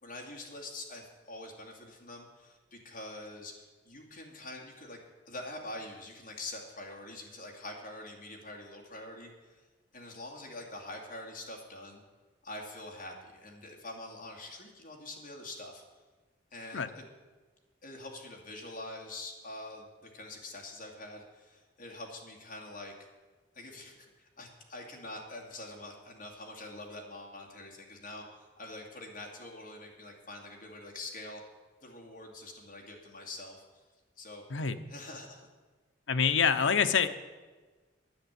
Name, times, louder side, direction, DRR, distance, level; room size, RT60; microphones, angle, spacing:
voice 1, 0.0-5.0 5.3-9.6 9.9-12.0 12.4-15.8 16.5-17.1 17.8-22.9 23.5-31.4 31.8-33.8 34.2-34.4 34.9-35.5, left 2 dB, 45° left, 0 dB, 2.3 m, -45 dB
voice 2, 34.5-34.8 36.1-37.1, left 6 dB, 85° left, 10 dB, 0.8 m, -26 dB
10.5 x 9.0 x 8.1 m, 1.3 s
head